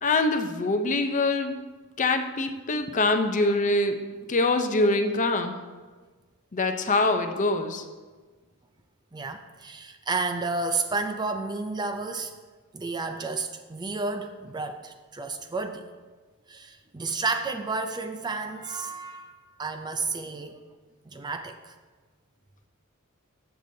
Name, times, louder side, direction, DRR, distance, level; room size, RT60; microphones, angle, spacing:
voice 1, 0.0-1.6 2.0-4.0 4.3-5.6 6.5-7.8, left 2 dB, 35° left, 0.6 m, -24 dB
voice 2, 9.1-12.3 12.7-15.9 16.5-20.6 21.1-21.7, right 3 dB, 20° right, 0.4 m, -31 dB
14.0 x 6.9 x 2.7 m
head